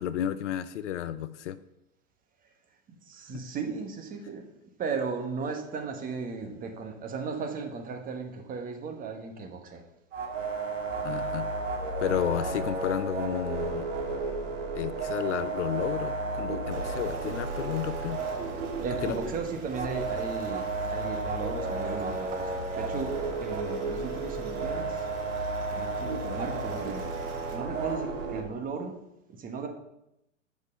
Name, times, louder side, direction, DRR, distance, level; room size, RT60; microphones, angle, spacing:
voice 1, 0.0-1.6 11.0-11.5 12.0-13.9 14.7-18.2 19.0-19.1, left 11 dB, 65° left, 14 dB, 0.6 m, -32 dB
voice 2, 3.0-4.5 4.8-9.8 18.8-25.1 25.7-27.1 27.5-29.0 29.3-29.7, right 5 dB, 20° right, 4 dB, 1.1 m, -36 dB
sound 1, 10.1-28.4, right 3 dB, 75° right, 1.8 m, -33 dB
sound 2, 16.7-27.6, right 1 dB, 35° right, 2.6 m, -46 dB
6.6 x 5.0 x 5.3 m, 0.84 s
hypercardioid pair, 110°, 38 cm